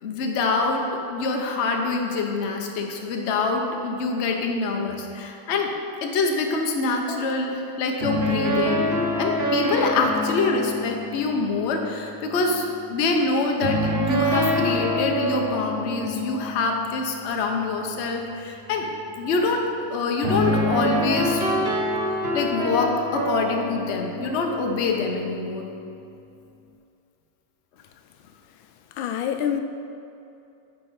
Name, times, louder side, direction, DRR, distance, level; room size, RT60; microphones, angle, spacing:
voice 1, 0.0-5.7 6.0-8.8 9.2-18.9 19.2-21.4 22.1-25.7, left 3 dB, 55° left, 2 dB, 0.7 m, -25 dB
sound 1, 8.0-12.8 13.6-17.4 20.2-25.7, equal, 40° right, 1.0 m, -26 dB
voice 2, 29.0-29.6, left 9 dB, 85° left, 7 dB, 1.4 m, -26 dB
9.1 x 4.5 x 5.6 m, 2.7 s
omnidirectional pair, 2.1 m